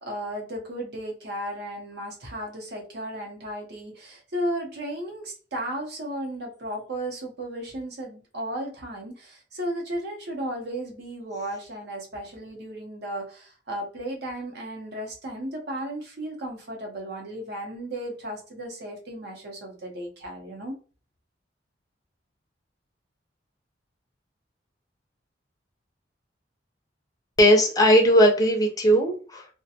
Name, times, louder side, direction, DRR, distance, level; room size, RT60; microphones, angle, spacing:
voice 1, 0.0-20.8, right 1 dB, 60° right, 1 dB, 0.8 m, -34 dB
voice 2, 27.4-29.5, equal, 20° left, 2 dB, 0.5 m, -18 dB
2.4 x 2.2 x 2.7 m, 0.37 s
head